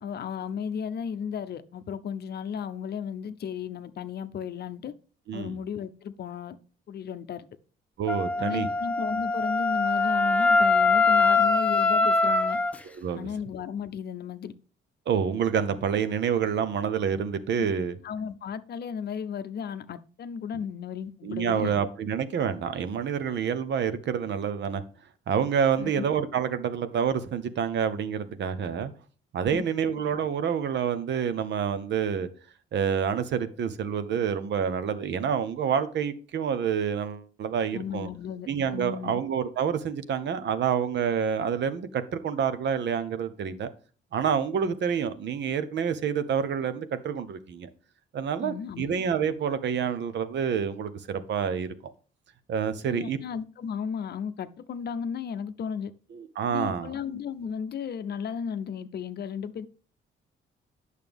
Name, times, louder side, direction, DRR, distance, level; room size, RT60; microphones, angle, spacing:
voice 1, 0.0-4.9 5.3-6.6 6.9-7.5 8.4-12.6 13.1-14.5 17.6-17.7 18.0-21.8 25.8-26.0 37.7-39.2 48.4-48.9 52.8-55.9 56.5-59.7, left 7 dB, 55° left, 0.6 m, -34 dB
voice 2, 8.0-8.7 12.9-13.3 15.1-18.0 21.2-24.8 25.3-28.9 29.3-32.3 32.7-38.1 38.5-43.7 44.1-47.7 48.1-51.7 52.5-53.2 56.1-56.9, right 7 dB, 65° right, 0.8 m, -28 dB
Wind instrument woodwind instrument, 8.1-12.8, left 3 dB, 5° left, 0.6 m, -23 dB
8.9 x 6.5 x 3.5 m
cardioid pair, 90°, 20 cm